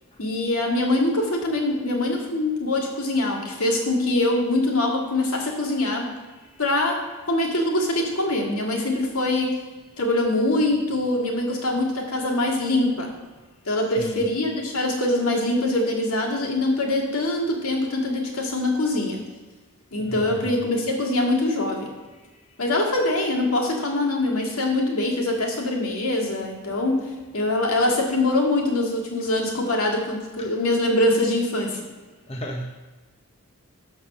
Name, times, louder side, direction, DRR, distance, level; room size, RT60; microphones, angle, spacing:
voice 1, 0.2-6.0 6.6-7.0 7.3-9.6 10.0-13.1 13.7-19.2 19.9-21.9 22.6-27.1 27.3-31.9, left 2 dB, 75° left, 0 dB, 2.1 m, -23 dB
voice 2, 20.1-20.6 32.3-32.8, equal, 25° left, 2 dB, 0.7 m, -33 dB
12.0 x 4.2 x 6.8 m, 1.3 s
head